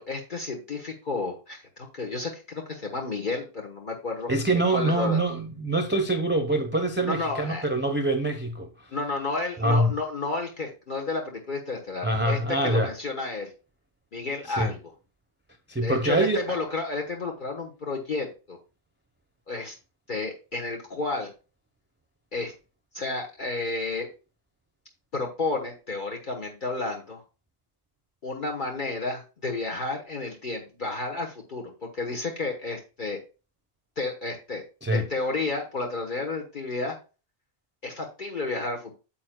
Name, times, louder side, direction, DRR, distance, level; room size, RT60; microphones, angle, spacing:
voice 1, 0.0-5.2 7.1-7.6 8.9-13.5 14.1-14.8 15.8-18.6 19.5-19.8 20.1-21.3 22.3-22.5 22.9-24.1 25.1-27.2 28.2-33.2 34.0-34.6 34.9-36.9 37.8-39.0, left 3 dB, 50° left, 1.3 m, -31 dB
voice 2, 4.3-8.7 9.6-9.9 12.0-12.9 14.5-14.7 15.7-16.6 34.8-35.0, right 2 dB, 10° right, 0.7 m, -25 dB
9.4 x 7.3 x 2.2 m
omnidirectional pair, 1.0 m